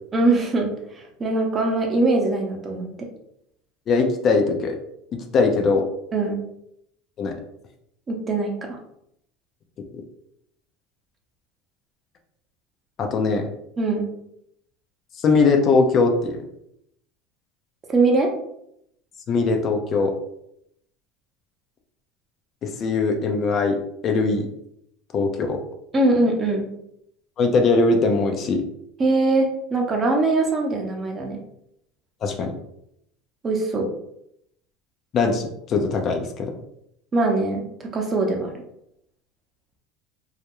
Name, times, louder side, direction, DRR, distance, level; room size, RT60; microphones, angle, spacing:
voice 1, 0.1-2.9 6.1-6.4 8.1-8.8 13.8-14.1 17.9-18.3 25.9-26.7 29.0-31.4 33.4-33.9 37.1-37.6 37.9-38.5, right 2 dB, 30° right, 1 dB, 0.7 m, -22 dB
voice 2, 3.9-4.8 5.3-5.9 7.2-7.3 9.9-10.0 13.0-13.5 15.2-16.4 19.3-20.1 22.6-23.8 24.0-24.5 25.1-25.6 27.4-28.6 32.2-32.5 35.1-36.5, left 4 dB, 45° left, 4 dB, 0.5 m, -20 dB
2.3 x 2.2 x 2.9 m, 0.75 s
supercardioid pair, 95°, 0 cm